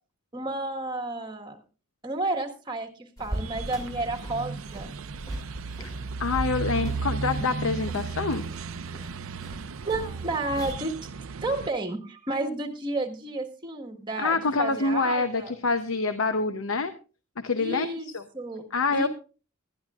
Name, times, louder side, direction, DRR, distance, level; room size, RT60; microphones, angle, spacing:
voice 1, 0.3-1.6 2.0-4.9 9.8-11.1 11.4-15.5 17.6-18.1 18.3-18.6 18.9-19.1, right 2 dB, 25° right, 4 dB, 1.5 m, -31 dB
sound 1, 3.2-10.7, right 1 dB, 20° left, 2.3 m, -40 dB
sound 2, 3.3-11.7, right 4 dB, 85° right, 0.6 m, -35 dB
voice 2, 6.2-8.4 14.2-16.9 17.4-17.9 18.1-18.2 18.7-19.1, left 3 dB, 80° left, 9 dB, 0.8 m, -26 dB
19.5 x 12.0 x 2.4 m, 0.35 s
head